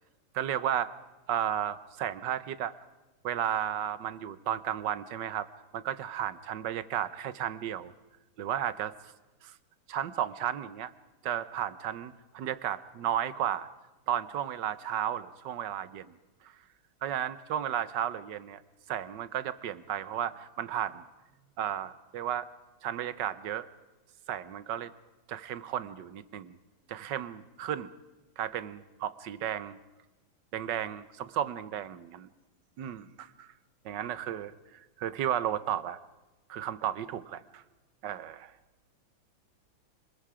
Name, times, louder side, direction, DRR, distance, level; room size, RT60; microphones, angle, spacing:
voice 1, 0.3-0.9 1.3-2.7 3.2-5.5 5.7-7.9 8.4-9.1 9.4-9.5 9.9-10.9 11.2-13.7 14.1-16.1 17.0-18.6 18.9-21.0 21.6-22.5 22.8-23.7 24.3-24.9 25.3-26.6 26.9-27.9 28.4-29.8 30.5-32.3 32.8-33.5 33.8-36.0 36.5-37.6 38.0-38.5, right 10 dB, 65° right, 16 dB, 1.4 m, -33 dB
27.0 x 20.5 x 5.0 m, 1.1 s
omnidirectional pair, 2.2 m